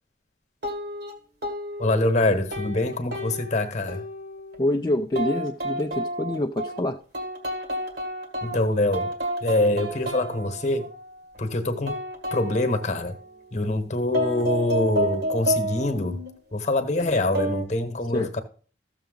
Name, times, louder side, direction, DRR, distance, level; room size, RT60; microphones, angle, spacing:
sound 1, 0.6-1.1 1.4-2.1 2.5-4.7 5.2-6.8 7.1-8.6 8.9-11.4 11.9-13.5 14.1-16.3 17.0-17.6, right 1 dB, 60° right, 1.8 m, -31 dB
voice 1, 1.8-4.0 8.4-9.1 9.4-10.9 11.4-11.9 12.3-13.1 13.5-16.2 16.5-18.4, left 2 dB, 40° left, 1.1 m, -24 dB
voice 2, 4.6-7.0 18.1-18.3, left 1 dB, 20° left, 0.4 m, -26 dB
14.0 x 6.9 x 3.9 m
head